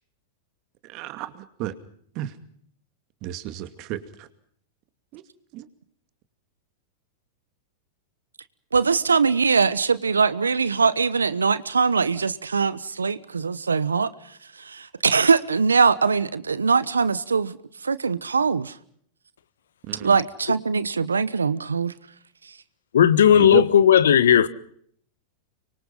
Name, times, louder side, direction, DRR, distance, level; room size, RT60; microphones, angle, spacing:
voice 1, 0.8-1.7 2.1-2.3 3.2-4.3 5.1-5.2 5.5-5.7 19.9-20.1 23.3-23.6, right 14 dB, 45° right, 2.4 m, -32 dB
voice 2, 8.7-18.8 19.9-21.9 22.4-22.6, right 5 dB, 90° right, 1.0 m, -22 dB
voice 3, 22.9-24.5, left 9 dB, 75° left, 1.4 m, -15 dB
25.0 x 24.0 x 5.6 m
hypercardioid pair, 100°, 0 cm